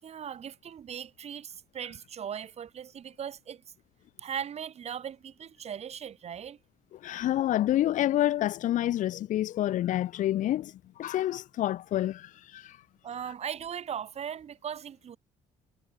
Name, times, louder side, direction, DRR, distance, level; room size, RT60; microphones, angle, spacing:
voice 1, 0.0-3.6 4.2-6.6 13.0-15.2, right 8 dB, 45° right, 5.4 m, -38 dB
voice 2, 7.0-12.8, left 13 dB, 60° left, 0.9 m, -28 dB
cardioid pair, 105°, 15 cm